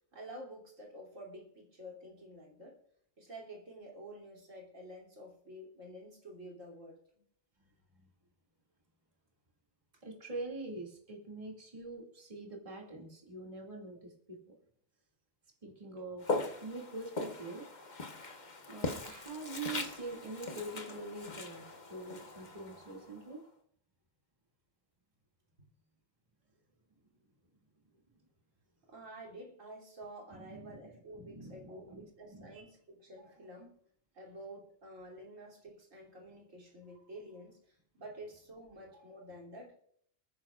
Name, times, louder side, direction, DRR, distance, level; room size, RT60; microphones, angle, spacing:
voice 1, 0.1-2.8 3.2-7.0 9.9-10.0 28.9-33.8 34.1-39.8, right 1 dB, 90° right, -1 dB, 3.5 m, -50 dB
voice 2, 10.0-14.6 15.6-17.9 18.7-23.4 30.4-32.6, right 2 dB, 25° right, -1 dB, 2.6 m, -45 dB
Walk footsteps, 16.2-23.3, left 3 dB, 35° left, 1.2 m, -40 dB
29.0 x 10.0 x 2.5 m, 0.66 s
omnidirectional pair, 1.3 m